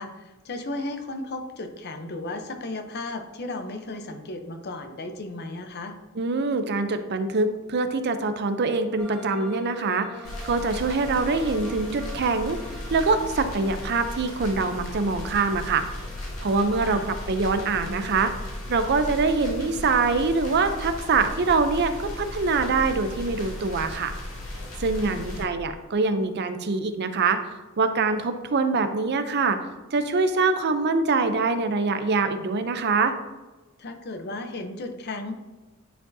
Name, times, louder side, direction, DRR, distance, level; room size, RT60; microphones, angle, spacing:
voice 1, 0.0-5.9 16.8-17.1 25.0-25.5 33.8-35.3, left 2 dB, 50° left, 6 dB, 0.7 m, -35 dB
voice 2, 6.2-12.6 12.9-15.8 16.4-18.3 18.7-24.1 24.8-29.6 29.9-33.1, right 4 dB, 55° right, 9 dB, 0.5 m, -24 dB
sound 1, 9.0-26.7, equal, 5° left, 0.8 m, -48 dB
sound 2, 10.2-25.4, left 1 dB, 75° left, 2.1 m, -36 dB
9.8 x 4.7 x 2.7 m, 1.2 s
head